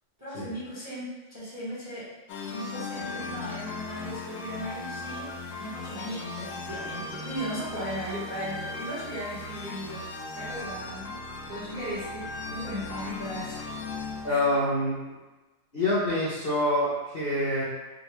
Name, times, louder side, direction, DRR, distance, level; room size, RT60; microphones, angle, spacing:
voice 1, 0.2-2.1 2.5-5.3 5.6-10.0 10.3-11.1 11.4-13.7 14.2-14.4, equal, 10° right, -10 dB, 0.9 m, -37 dB
sound 1, 2.3-14.6, left 3 dB, 75° left, 1.1 m, -37 dB
voice 2, 14.2-15.0 15.7-17.6, left 1 dB, 45° left, -9 dB, 0.8 m, -26 dB
3.7 x 2.4 x 3.0 m, 1.1 s
omnidirectional pair, 1.7 m